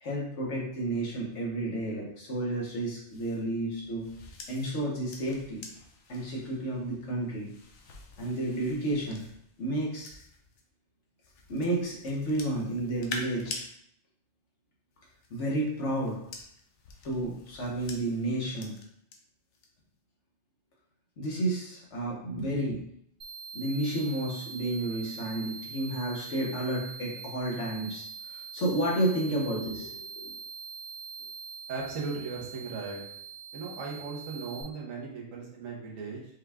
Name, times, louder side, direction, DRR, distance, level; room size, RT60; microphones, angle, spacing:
voice 1, 0.0-4.1 4.5-5.6 6.1-7.5 8.2-9.2 9.6-10.2 11.5-13.6 15.3-16.2 17.0-18.7 21.2-22.8 23.5-30.3, right 1 dB, 65° left, -3 dB, 1.3 m, -31 dB
sound 1, 3.1-10.6 11.2-13.7 14.9-19.2 19.5-19.9, left 3 dB, 85° left, 1.1 m, -46 dB
sound 2, 23.2-34.6, right 6 dB, 35° right, 0.9 m, -43 dB
voice 2, 31.7-33.0 33.5-36.3, right 4 dB, 80° right, -3 dB, 1.3 m, -37 dB
5.3 x 2.3 x 3.4 m, 0.72 s
omnidirectional pair, 1.4 m